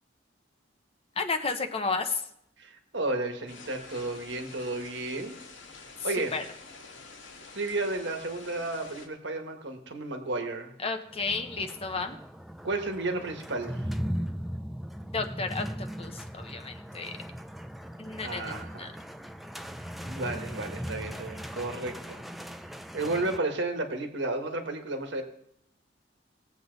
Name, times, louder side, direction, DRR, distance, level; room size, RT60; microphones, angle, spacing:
voice 1, 1.2-2.3 6.3-6.4 10.8-12.2 15.1-17.2 18.0-18.9, left 4 dB, 30° left, 6 dB, 0.8 m, -32 dB
voice 2, 2.6-5.3 6.0-6.3 7.5-10.7 12.6-13.8 18.2-18.9 20.0-22.2 22.9-25.2, right 2 dB, 65° right, 5 dB, 1.6 m, -32 dB
sound 1, 3.5-9.1, left 4 dB, 85° left, 2.0 m, -48 dB
sound 2, 11.1-23.4, equal, ahead, 0.5 m, -38 dB
19.0 x 8.1 x 4.0 m, 0.75 s
head